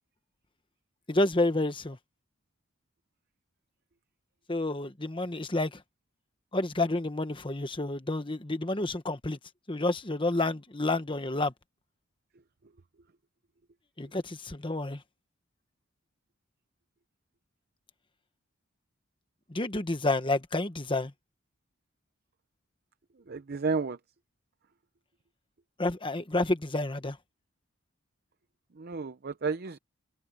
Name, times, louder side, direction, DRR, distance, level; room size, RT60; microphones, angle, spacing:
voice 1, 1.1-2.0 4.5-5.8 6.5-9.4 9.7-11.5 14.0-15.0 19.5-21.1 25.8-27.2, left 2 dB, 25° left, 1.2 m, -29 dB
voice 2, 23.3-24.0 28.8-29.8, right 4 dB, 45° right, 0.6 m, -32 dB
head